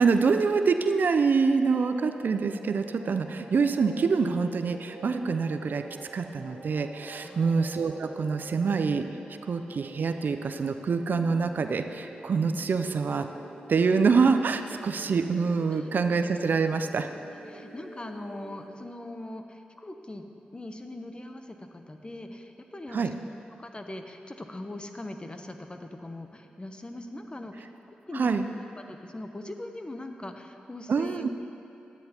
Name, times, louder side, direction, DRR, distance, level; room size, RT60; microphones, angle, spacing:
voice 1, 0.0-5.8 6.1-9.1 9.5-13.3 13.7-17.1 22.9-23.1 28.2-28.4 30.9-31.3, right 5 dB, 65° right, 8 dB, 0.4 m, -25 dB
sound 1, 1.6-18.7, right 2 dB, 80° right, 1.4 m, -47 dB
voice 2, 17.3-20.3 20.5-23.3 23.6-28.3 28.8-31.3, left 1 dB, 30° left, 5 dB, 0.8 m, -41 dB
11.5 x 9.3 x 2.9 m, 2.8 s
supercardioid pair, 40°, 3 cm